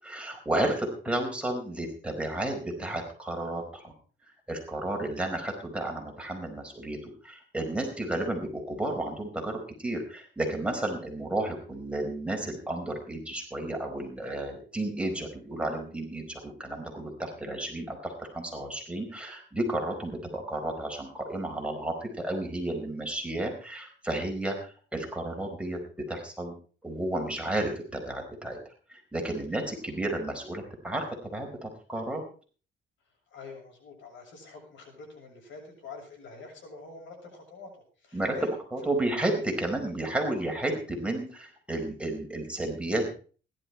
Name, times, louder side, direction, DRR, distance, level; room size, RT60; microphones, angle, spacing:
voice 1, 0.0-3.9 4.5-26.5 26.8-31.0 31.3-32.2 38.1-38.4 38.7-43.1, right 1 dB, 5° right, 2 dB, 4.6 m, -32 dB
voice 2, 33.3-38.5, left 4 dB, 70° left, 1 dB, 7.0 m, -46 dB
17.0 x 12.0 x 4.5 m, 0.40 s
cardioid pair, 90°, 20 cm